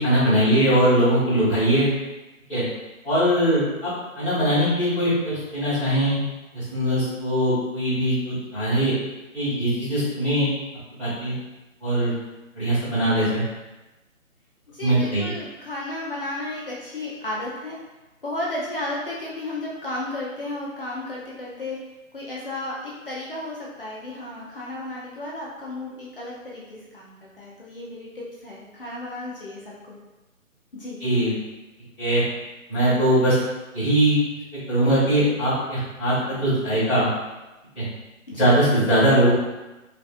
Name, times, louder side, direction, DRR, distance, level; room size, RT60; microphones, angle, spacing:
voice 1, 0.0-1.9 2.5-2.6 3.0-6.2 6.5-8.9 9.3-10.5 11.0-11.3 11.8-12.1 12.5-13.4 14.8-15.3 31.0-31.3 32.0-32.2 32.7-33.4 33.7-34.2 34.7-37.1 37.7-37.8 38.4-39.3, right 1 dB, ahead, -31 dB, 0.6 m, -21 dB
voice 2, 14.7-17.8 18.2-21.8 22.1-30.0 30.7-31.0 38.3-38.5, left 1 dB, 40° left, -5 dB, 0.6 m, -33 dB
3.4 x 2.3 x 2.5 m, 1.1 s
figure-of-eight pair, 155°, 41 cm